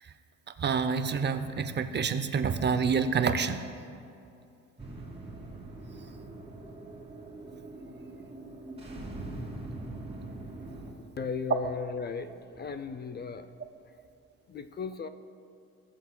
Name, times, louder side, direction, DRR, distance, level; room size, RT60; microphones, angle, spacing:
voice 1, 0.6-3.6, right 5 dB, 35° right, 10 dB, 0.5 m, -28 dB
sound 1, 4.8-10.9, right 2 dB, 20° right, 2.0 m, -42 dB
voice 2, 11.2-13.5 14.5-15.1, left 5 dB, 35° left, 11 dB, 0.4 m, -36 dB
19.5 x 7.2 x 2.2 m, 2.6 s
cardioid pair, 90°, 30 cm